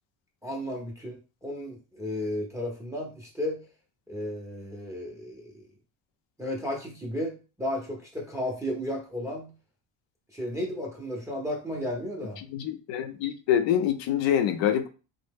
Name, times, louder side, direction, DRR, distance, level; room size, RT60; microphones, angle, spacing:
voice 1, 0.4-3.6 4.1-5.6 6.4-9.5 10.3-12.4, left 1 dB, 5° right, 0.5 m, -33 dB
voice 2, 12.5-14.9, left 9 dB, 75° left, 0.6 m, -25 dB
2.6 x 2.0 x 3.4 m
cardioid pair, 110°, 44 cm